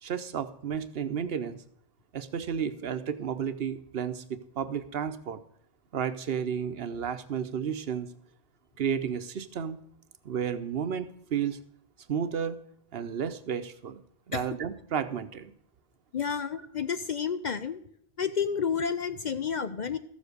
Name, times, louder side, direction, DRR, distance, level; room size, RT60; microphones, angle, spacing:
voice 1, 0.0-1.6 2.1-4.2 4.6-5.4 5.9-8.1 8.8-9.8 10.2-11.6 12.1-12.6 12.9-15.5, right 7 dB, 65° right, 11 dB, 1.0 m, -32 dB
voice 2, 16.1-17.8 18.2-20.0, left 7 dB, 50° left, 11 dB, 0.6 m, -30 dB
13.5 x 7.2 x 6.6 m, 0.66 s
omnidirectional pair, 1.1 m